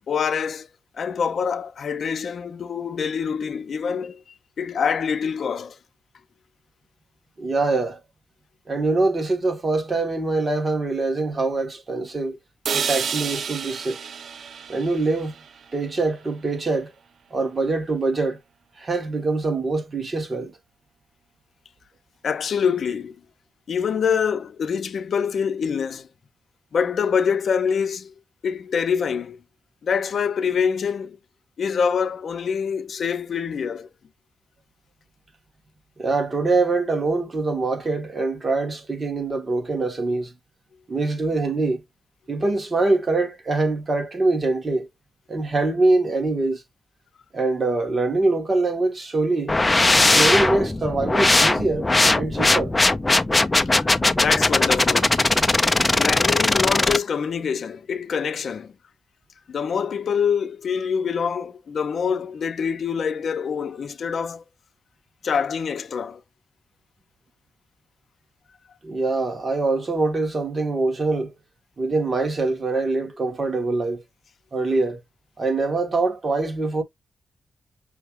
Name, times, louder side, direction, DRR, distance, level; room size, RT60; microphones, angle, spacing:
voice 1, 0.1-0.7 1.0-4.2 4.6-5.8 22.2-23.2 23.7-26.1 26.7-28.1 28.4-29.4 29.8-31.2 31.6-33.9 53.8-55.2 56.0-58.7 59.5-64.4 65.2-66.2, left 6 dB, 70° left, 0.6 m, -25 dB
voice 2, 7.4-8.0 8.7-12.4 12.7-14.0 14.7-15.3 15.7-16.9 17.3-18.4 18.8-20.6 36.0-40.3 40.9-41.8 42.3-44.9 45.3-46.6 47.3-49.6 50.0-52.7 68.8-71.3 71.8-74.0 74.5-75.0 75.4-76.8, right 3 dB, 35° right, 1.6 m, -24 dB
sound 1, 12.6-16.7, right 6 dB, 75° right, 0.5 m, -31 dB
sound 2, 49.5-57.0, left 2 dB, 20° left, 0.5 m, -19 dB
5.5 x 2.3 x 3.1 m
cardioid pair, 95°, 0 cm